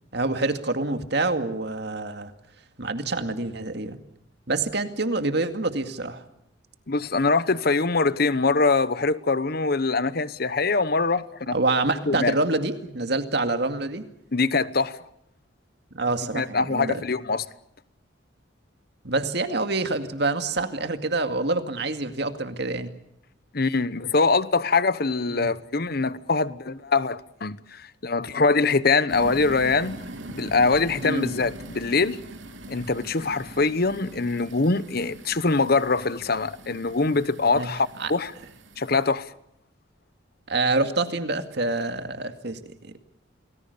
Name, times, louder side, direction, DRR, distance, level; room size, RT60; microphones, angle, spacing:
voice 1, 0.1-2.3 2.8-4.0 4.5-6.2 11.5-14.0 15.9-17.0 19.0-22.9 25.3-25.5 31.0-31.3 37.5-37.7 38.0-38.1 40.5-43.0, right 2 dB, 60° right, 2.2 m, -26 dB
voice 2, 6.9-11.6 12.1-12.3 14.3-15.0 16.3-17.5 23.5-32.2 32.7-38.3 38.8-39.3, left 3 dB, 50° left, 1.0 m, -23 dB
sound 1, 29.1-39.1, right 2 dB, 80° right, 2.7 m, -42 dB
28.5 x 20.0 x 6.8 m
head